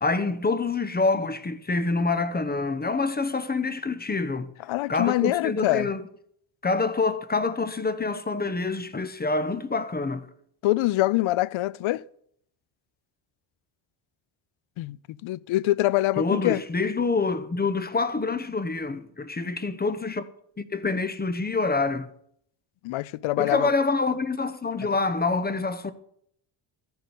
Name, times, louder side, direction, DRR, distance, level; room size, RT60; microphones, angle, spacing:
voice 1, 0.0-4.5 4.9-6.0 6.6-10.3 16.2-20.2 20.6-22.1 23.4-25.9, left 3 dB, 20° left, 0.9 m, -26 dB
voice 2, 4.7-5.9 10.6-12.0 14.8-15.0 15.2-16.6 22.8-23.7, left 17 dB, 70° left, 0.6 m, -24 dB
14.5 x 7.0 x 8.0 m
cardioid pair, 115°, 49 cm